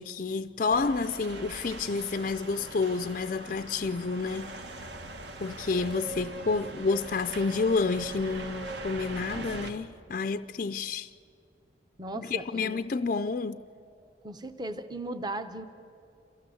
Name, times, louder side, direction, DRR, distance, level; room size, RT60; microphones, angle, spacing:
voice 1, 0.0-4.6 5.4-11.1 12.1-13.6, left 4 dB, 45° left, 0.4 m, -29 dB
sound 1, 0.7-9.7, right 2 dB, 65° right, 1.6 m, -41 dB
voice 2, 12.0-12.8 14.2-15.6, right 2 dB, 20° right, 0.8 m, -37 dB
27.0 x 16.0 x 7.9 m
head